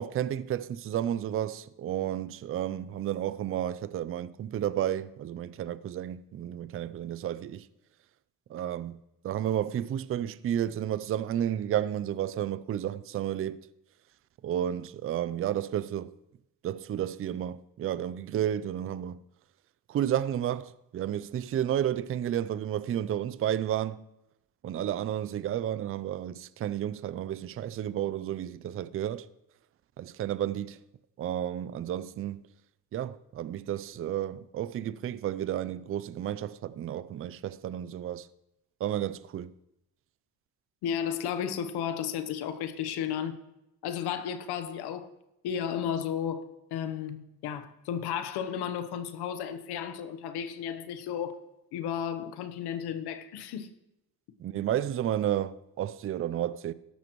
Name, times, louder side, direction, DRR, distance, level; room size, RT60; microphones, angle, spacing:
voice 1, 0.0-7.7 8.5-9.0 9.2-13.6 14.4-16.1 16.6-19.2 19.9-24.1 24.6-29.3 30.0-30.8 31.2-32.4 32.9-38.3 38.8-39.5 54.4-56.7, right 11 dB, 35° right, 0.4 m, -32 dB
voice 2, 40.8-43.4 43.8-45.1 45.4-51.3 51.7-53.7, left 8 dB, 80° left, 1.1 m, -33 dB
13.5 x 11.5 x 3.1 m
cardioid pair, 90°, 38 cm